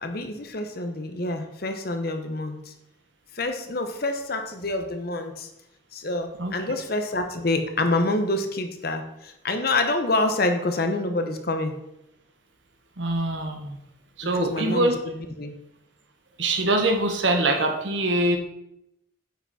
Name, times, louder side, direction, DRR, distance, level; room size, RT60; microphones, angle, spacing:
voice 1, 0.0-2.7 3.3-5.5 5.9-11.7 14.3-14.9 15.4-15.5, left 2 dB, 50° left, 6 dB, 0.9 m, -27 dB
voice 2, 13.0-13.8 14.2-15.0 16.4-18.4, right 2 dB, 70° right, 4 dB, 1.2 m, -23 dB
9.1 x 5.9 x 4.2 m, 0.84 s
head